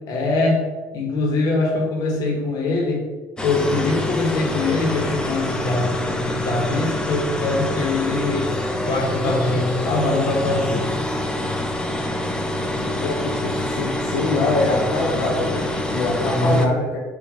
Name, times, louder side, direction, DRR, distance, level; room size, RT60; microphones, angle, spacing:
voice 1, 0.1-0.7 0.9-3.0 3.4-8.5 8.9-10.9 16.2-16.6, left 2 dB, 60° left, 0 dB, 2.0 m, -22 dB
sound 1, 3.4-16.7, left 1 dB, 10° left, 0.9 m, -26 dB
voice 2, 12.8-17.0, left 2 dB, 85° left, -4 dB, 1.3 m, -24 dB
6.4 x 3.4 x 5.5 m, 1.3 s
supercardioid pair, 80°, 7 cm